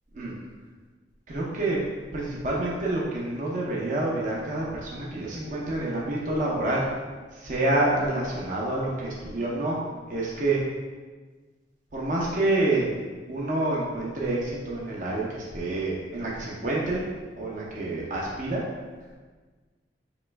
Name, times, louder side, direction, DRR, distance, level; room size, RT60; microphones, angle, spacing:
voice 1, 1.3-1.8 2.1-6.9 7.3-9.8 10.1-10.6 11.9-12.9 13.3-17.0 17.4-18.6, right 2 dB, 45° right, -5 dB, 0.6 m, -28 dB
4.4 x 3.0 x 3.3 m, 1.4 s
head